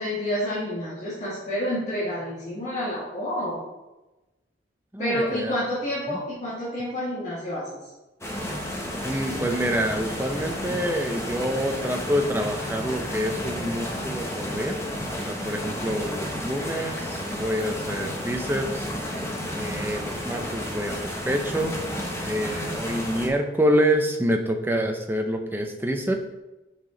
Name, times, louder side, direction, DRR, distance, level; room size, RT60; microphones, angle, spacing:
voice 1, 0.0-3.6 5.0-7.7, equal, 40° left, -9 dB, 1.8 m, -29 dB
voice 2, 4.9-5.5 6.1-6.2 9.0-14.8 15.3-18.9 19.6-21.8 22.2-26.2, equal, 10° right, 4 dB, 0.6 m, -27 dB
sound 1, 8.2-23.3, equal, 15° left, 0.9 m, -32 dB
6.0 x 5.9 x 3.9 m, 1.0 s
head